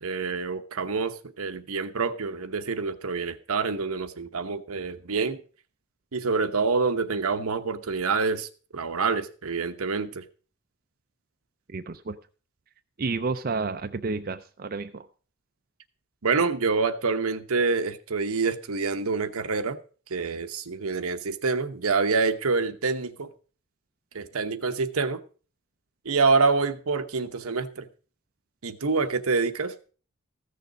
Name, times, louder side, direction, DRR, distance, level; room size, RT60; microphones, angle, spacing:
voice 1, 0.0-5.4 6.1-10.2 16.2-19.8 20.1-23.3 24.1-25.2 26.0-27.9 28.6-29.7, right 4 dB, 80° right, 9 dB, 0.9 m, -26 dB
voice 2, 11.7-12.2 13.0-15.1, right 4 dB, 40° right, 8 dB, 0.5 m, -30 dB
15.0 x 6.7 x 5.2 m, 0.38 s
head